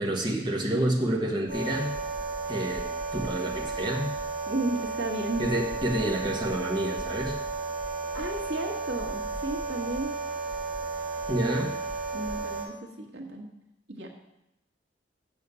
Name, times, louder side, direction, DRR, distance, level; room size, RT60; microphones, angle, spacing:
voice 1, 0.0-1.9 2.5-4.1 5.4-7.4 11.3-11.7, right 1 dB, 25° right, -2 dB, 1.6 m, -28 dB
sound 1, 1.5-12.7, right 3 dB, 55° right, 2.8 m, -33 dB
voice 2, 4.5-5.4 8.1-10.1 11.1-11.3 12.1-13.5 13.9-14.2, right 2 dB, 90° right, 1 dB, 1.6 m, -34 dB
7.7 x 7.0 x 7.0 m, 0.84 s
head